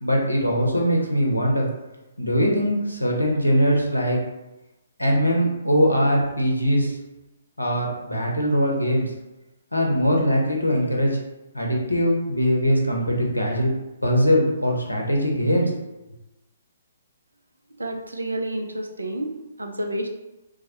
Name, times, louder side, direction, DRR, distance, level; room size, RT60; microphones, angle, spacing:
voice 1, 0.0-1.7 2.2-4.2 5.0-7.0 7.6-9.1 9.7-11.2 11.5-13.7 14.0-15.7, equal, 85° left, -1 dB, 0.6 m, -21 dB
voice 2, 17.8-20.1, right 1 dB, 75° right, 3 dB, 0.3 m, -30 dB
2.2 x 2.1 x 2.7 m, 0.98 s
figure-of-eight pair, 130°, 0 cm